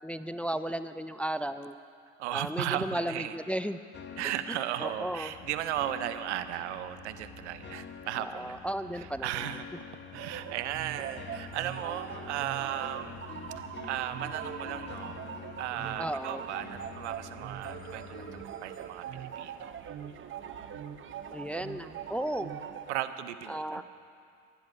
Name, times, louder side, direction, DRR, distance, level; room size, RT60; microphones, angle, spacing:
voice 1, 0.0-1.7 2.3-3.8 4.8-5.3 8.2-9.5 16.0-16.4 21.3-22.6 23.5-23.8, right 1 dB, 5° left, 11 dB, 0.4 m, -34 dB
voice 2, 2.2-3.3 4.2-8.6 8.9-9.6 10.1-13.3 13.8-15.3 15.6-19.8 22.9-23.8, right 12 dB, 85° right, 12 dB, 0.8 m, -36 dB
sound 1, 3.9-18.5, left 7 dB, 35° left, 1.0 m, -47 dB
sound 2, 5.3-22.6, right 9 dB, 65° right, 1.1 m, -59 dB
sound 3, 10.1-23.0, right 9 dB, 35° right, 0.8 m, -42 dB
16.0 x 11.5 x 5.4 m, 2.3 s
hypercardioid pair, 80°, 34 cm